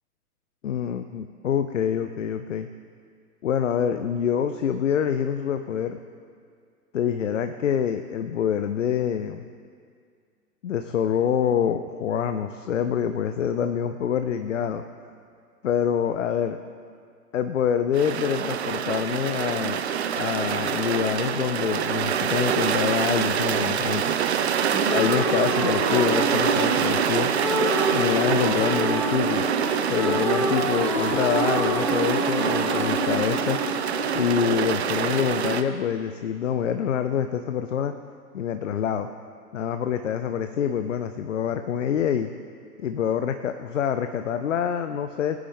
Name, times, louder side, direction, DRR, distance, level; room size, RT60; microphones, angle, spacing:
voice 1, 0.6-2.7 3.4-6.0 6.9-9.5 10.6-14.8 15.6-16.6 17.3-19.8 20.1-24.2 24.9-27.3 27.9-29.4 29.9-33.6 34.1-37.9 38.3-39.1 39.5-42.3 42.8-45.4, left 8 dB, 50° left, 9 dB, 0.6 m, -26 dB
sound 1, 17.9-35.6, right 8 dB, 45° right, 0.7 m, -25 dB
sound 2, 24.7-35.5, equal, 5° left, 0.6 m, -28 dB
20.0 x 9.4 x 3.6 m, 2.2 s
figure-of-eight pair, 120°, 47 cm